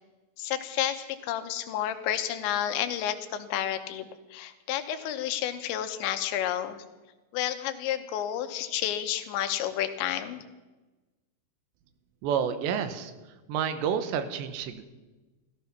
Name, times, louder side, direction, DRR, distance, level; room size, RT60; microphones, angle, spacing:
voice 1, 0.4-6.8 7.3-10.4, left 11 dB, 90° left, 9 dB, 3.3 m, -31 dB
voice 2, 12.2-13.1 13.5-14.9, right 8 dB, 85° right, 9 dB, 3.3 m, -29 dB
15.0 x 14.5 x 5.8 m, 1.2 s
omnidirectional pair, 5.0 m